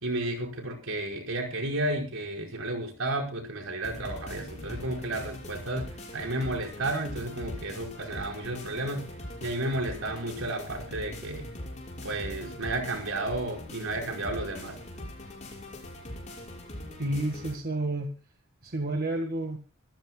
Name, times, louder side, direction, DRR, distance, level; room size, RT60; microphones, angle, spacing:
voice 1, 0.0-9.1 9.4-11.5 12.0-14.8, right 2 dB, 75° right, 2 dB, 5.2 m, -32 dB
sound 1, 3.8-17.5, left 1 dB, 35° left, 6.1 m, -41 dB
voice 2, 17.0-18.1 18.6-19.6, right 1 dB, 45° right, 4 dB, 1.7 m, -30 dB
25.0 x 14.5 x 2.3 m, 0.34 s
head